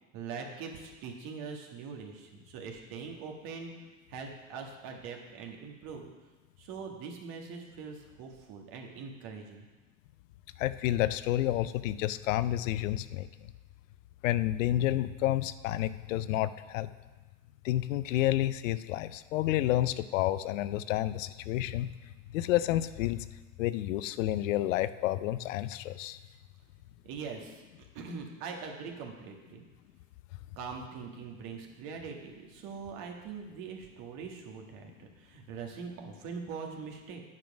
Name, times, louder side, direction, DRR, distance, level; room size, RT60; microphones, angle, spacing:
voice 1, 0.1-3.7 4.1-6.1 6.6-9.7 27.0-27.6 27.9-29.6 30.6-37.2, right 5 dB, 55° right, 2 dB, 1.7 m, -42 dB
voice 2, 10.6-13.5 14.2-16.9 17.6-21.9 22.3-23.3 23.6-26.2, left 14 dB, 75° left, 14 dB, 0.5 m, -30 dB
9.4 x 5.0 x 6.1 m, 1.2 s
hypercardioid pair, 80°, 39 cm